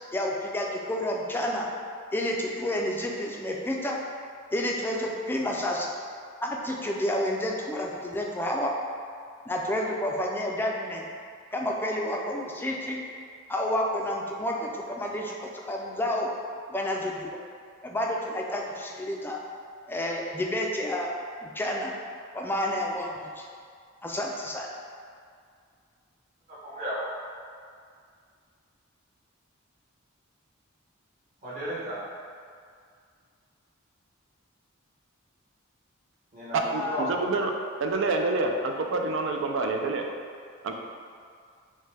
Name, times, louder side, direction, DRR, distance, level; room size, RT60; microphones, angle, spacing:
voice 1, 0.1-1.7 2.1-4.0 4.5-5.9 6.4-8.7 9.5-11.1 11.5-13.0 13.5-16.3 16.7-17.4 17.8-19.4 19.9-21.1 21.4-21.9 22.3-23.5 24.0-24.7 36.7-37.0, left 1 dB, 10° left, -1 dB, 0.4 m, -30 dB
voice 2, 26.5-27.1 31.4-32.0 36.3-37.2, equal, 40° right, -9 dB, 1.3 m, -34 dB
voice 3, 36.5-37.5 37.8-40.0 40.6-40.8, right 3 dB, 65° right, 3 dB, 0.4 m, -27 dB
6.3 x 2.2 x 3.3 m, 2.2 s
head